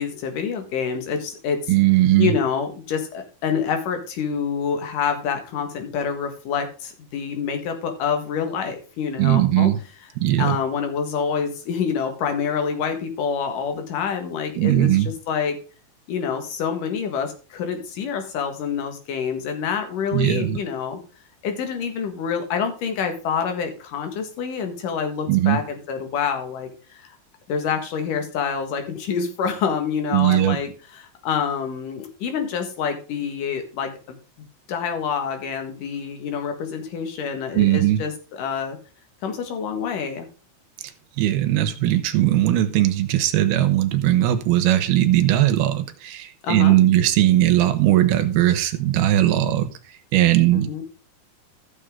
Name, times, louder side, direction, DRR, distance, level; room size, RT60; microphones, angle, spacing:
voice 1, 0.0-1.7 2.2-9.7 10.4-15.6 16.1-21.0 21.4-27.2 27.5-34.2 34.7-38.8 39.2-40.3 46.4-46.8 50.5-50.8, left 6 dB, 65° left, 3.0 m, -27 dB
voice 2, 1.7-2.3 9.2-9.8 10.2-10.6 14.6-15.1 20.1-20.6 25.3-25.6 30.1-30.6 37.6-38.0 41.2-49.7 50.1-50.8, right 14 dB, 85° right, 2.8 m, -19 dB
14.5 x 6.7 x 3.7 m
omnidirectional pair, 4.5 m